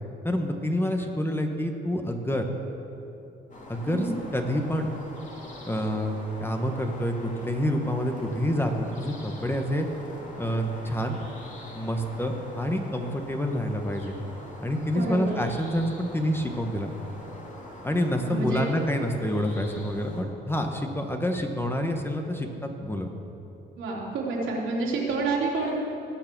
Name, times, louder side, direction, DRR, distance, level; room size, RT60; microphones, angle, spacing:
voice 1, 0.2-2.5 3.7-4.9 5.6-9.9 10.4-11.2 11.7-14.2 14.6-16.9 17.8-23.1, equal, 10° left, 4 dB, 1.3 m, -28 dB
sound 1, 3.5-20.2, left 1 dB, 40° left, 2.8 m, -44 dB
voice 2, 14.9-15.4 18.2-18.8 23.8-25.8, right 3 dB, 80° right, -4 dB, 3.2 m, -28 dB
18.5 x 6.7 x 6.1 m, 2.9 s
cardioid pair, 90°, 20 cm